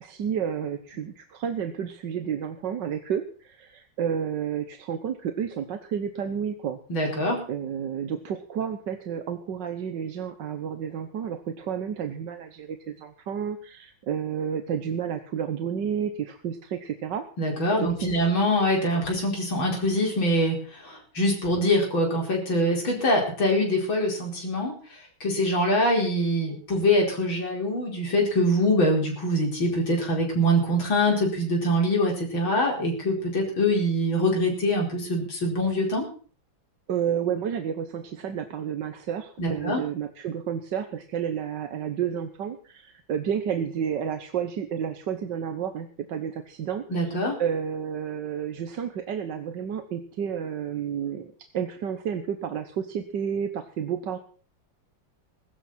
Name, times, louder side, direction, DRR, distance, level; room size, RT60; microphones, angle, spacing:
voice 1, 0.0-6.8 7.5-17.2 17.8-18.1 36.9-54.2, right 8 dB, 65° right, 8 dB, 1.7 m, -31 dB
voice 2, 6.9-7.4 17.4-36.1 39.4-39.8 46.9-47.4, equal, 85° left, -1 dB, 5.6 m, -24 dB
21.5 x 12.5 x 4.4 m, 0.43 s
omnidirectional pair, 2.1 m